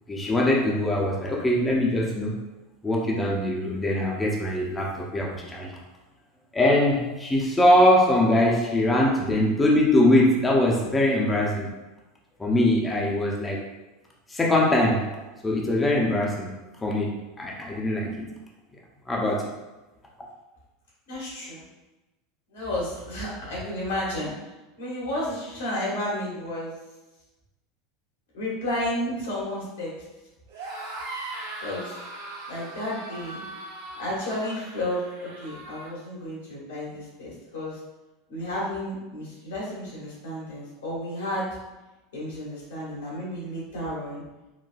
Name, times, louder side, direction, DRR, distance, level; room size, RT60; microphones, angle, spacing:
voice 1, 0.1-2.4 2.8-5.8 6.5-11.7 12.4-13.6 14.3-16.5 16.8-18.3 19.1-19.6, left 1 dB, 15° left, -2 dB, 0.5 m, -22 dB
voice 2, 21.1-21.6 22.5-26.8 28.3-29.9 31.6-31.9 32.5-33.4 33.9-37.8 38.3-41.5 42.1-44.2, left 1 dB, 90° left, -7 dB, 1.4 m, -32 dB
sound 1, 30.5-35.9, right 2 dB, 85° right, 1.1 m, -39 dB
3.8 x 2.3 x 2.3 m, 1.1 s
hypercardioid pair, 105°, 0 cm